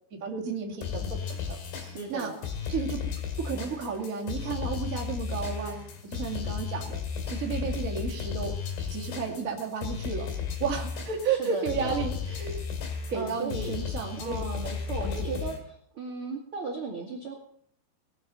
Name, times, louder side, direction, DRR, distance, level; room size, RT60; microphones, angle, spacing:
voice 1, 0.1-2.3 2.7-3.0 3.4-7.0 7.3-8.5 8.9-10.3 10.6-12.7 13.1-14.4 15.0-15.3, right 5 dB, 30° right, 0 dB, 1.5 m, -33 dB
sound 1, 0.8-15.6, left 7 dB, 70° left, 4.3 m, -34 dB
voice 2, 1.9-2.4 11.4-12.0 13.1-13.7 14.2-15.5 15.9-17.3, right 3 dB, 50° right, 1 dB, 1.7 m, -35 dB
19.5 x 6.9 x 6.8 m, 0.67 s
omnidirectional pair, 5.0 m